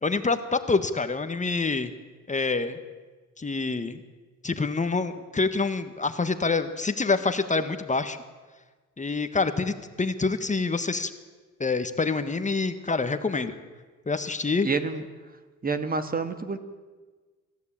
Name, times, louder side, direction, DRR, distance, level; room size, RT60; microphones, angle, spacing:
voice 1, 0.0-1.9 2.3-2.8 3.4-4.0 4.4-8.2 9.0-11.1 11.6-13.6 14.1-14.7, left 4 dB, 25° left, 9 dB, 1.5 m, -26 dB
voice 2, 14.6-15.0 15.6-16.6, right 4 dB, 30° right, 10 dB, 1.8 m, -28 dB
27.0 x 14.0 x 8.8 m, 1.4 s
cardioid pair, 90°, 30 cm